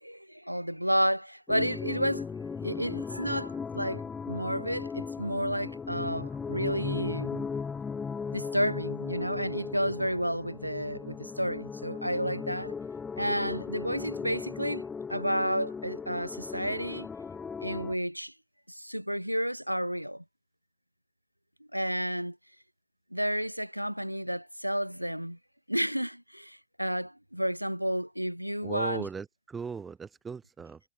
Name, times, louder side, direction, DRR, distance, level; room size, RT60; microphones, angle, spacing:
voice 1, 0.0-2.2 2.6-7.5 8.3-12.7 13.2-14.8 15.1-17.1 17.6-18.3 18.7-20.2 21.7-22.4 23.1-25.4 25.7-29.1, equal, 90° right, 1.2 m, -31 dB
sound 1, 1.5-17.9, left 5 dB, 15° left, 3.8 m, -37 dB
voice 2, 28.6-30.8, right 5 dB, 15° right, 7.2 m, -38 dB
figure-of-eight pair, 90°, 0 cm